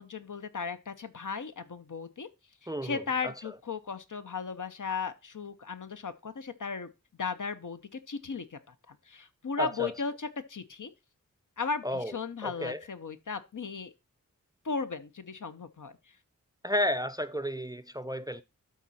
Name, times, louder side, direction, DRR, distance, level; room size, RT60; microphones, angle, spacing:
voice 1, 0.0-2.3 2.6-6.9 7.2-8.6 8.9-10.9 11.6-13.9 14.6-15.9, left 5 dB, 65° left, 0.8 m, -36 dB
voice 2, 2.7-3.3 9.6-9.9 11.8-12.1 12.4-12.8 16.6-18.4, equal, 10° right, 0.4 m, -32 dB
12.5 x 4.1 x 4.2 m
wide cardioid pair, 65°, 33 cm